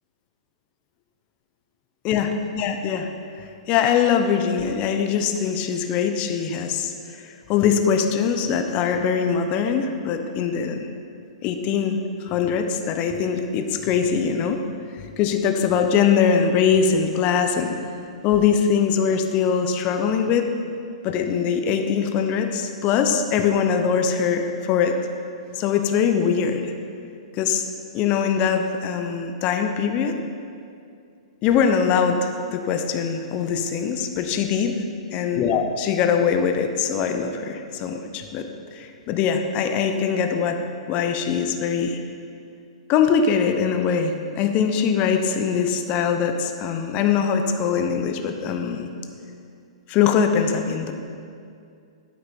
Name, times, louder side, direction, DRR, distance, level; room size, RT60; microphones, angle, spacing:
voice 1, 2.0-3.1 3.7-10.9 11.4-14.6 15.2-17.8 18.2-20.5 21.0-25.0 25.6-26.7 27.4-27.7 27.9-30.2 31.4-34.8 35.1-40.6 40.9-42.0 42.9-48.9 49.9-50.9, left 7 dB, 35° left, 6 dB, 0.8 m, -22 dB
9.4 x 8.6 x 4.4 m, 2.4 s
hypercardioid pair, 120°, 4 cm